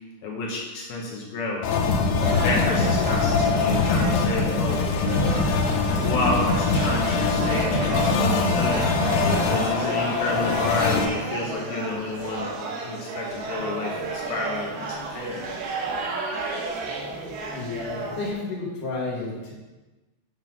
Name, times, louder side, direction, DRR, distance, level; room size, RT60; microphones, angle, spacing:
voice 1, 0.2-1.6 2.4-4.8 5.4-5.6 6.0-8.9 9.4-15.4, left 2 dB, 75° left, -2 dB, 2.3 m, -30 dB
sound 1, 1.6-11.0, left 4 dB, 90° left, 2.3 m, -23 dB
sound 2, 2.2-18.3, right 3 dB, 65° right, 2.9 m, -32 dB
voice 2, 17.5-19.5, left 3 dB, 50° left, -4 dB, 2.8 m, -31 dB
9.4 x 6.0 x 5.4 m, 1.2 s
omnidirectional pair, 5.8 m